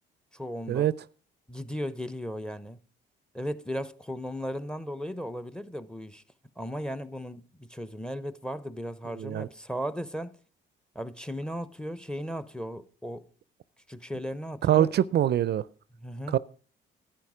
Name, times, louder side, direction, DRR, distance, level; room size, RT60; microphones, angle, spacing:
voice 1, 0.3-0.9 1.5-2.8 3.3-6.2 6.6-10.4 10.9-13.3 13.9-14.9 15.9-16.4, equal, 5° left, 0.7 m, -36 dB
voice 2, 9.2-9.5 14.6-15.6 16.3-16.4, right 11 dB, 55° right, 0.4 m, -24 dB
11.5 x 9.0 x 4.9 m
cardioid pair, 90°, 20 cm